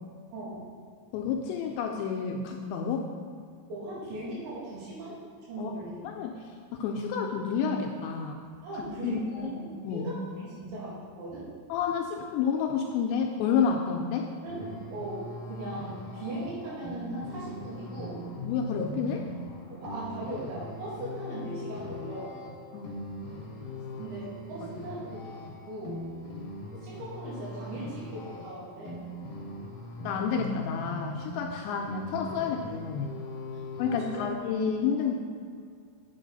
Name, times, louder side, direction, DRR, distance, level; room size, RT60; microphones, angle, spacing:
voice 1, 0.3-0.7 3.7-5.1 5.5-6.0 8.6-11.5 14.4-18.3 19.7-22.4 24.0-25.2 25.7-26.0 26.7-29.0 33.5-34.2 34.9-35.1, right 1 dB, 75° right, -7 dB, 4.5 m, -39 dB
voice 2, 1.1-3.0 5.6-5.7 6.0-8.4 8.7-9.5 9.8-10.1 11.7-14.2 18.4-19.2 22.7-23.0 24.6-24.7 30.0-33.1 33.8-35.2, left 6 dB, 85° left, 1 dB, 2.6 m, -30 dB
sound 1, 14.5-34.3, left 1 dB, 60° left, 2.4 m, -41 dB
8.3 x 7.2 x 4.0 m, 2.2 s
omnidirectional pair, 5.5 m